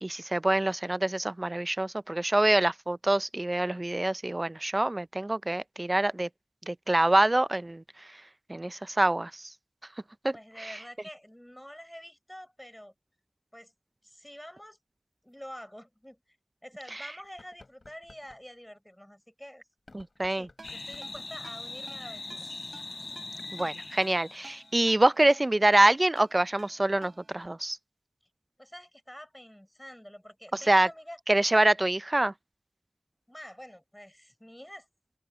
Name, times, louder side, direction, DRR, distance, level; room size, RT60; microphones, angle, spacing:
voice 1, 0.0-6.3 6.7-7.8 8.5-9.4 10.2-10.7 19.9-20.5 23.5-27.8 30.5-30.9 31.3-32.3, right 1 dB, 40° right, 0.5 m, -25 dB
voice 2, 10.3-12.9 13.5-13.7 14.0-14.8 15.2-16.2 16.6-19.6 20.3-22.5 28.6-31.2 33.3-34.9, equal, 10° left, 6.6 m, -47 dB
sound 1, 14.0-14.1 15.3-15.4 16.0-16.1 17.2-18.5 19.7-21.4, left 2 dB, 70° left, 6.2 m, -57 dB
sound 2, 20.6-24.9, left 3 dB, 85° left, 5.2 m, -41 dB
Ringtone, 20.6-27.4, right 3 dB, 85° right, 7.1 m, -54 dB
open air
wide cardioid pair, 45°, 0 cm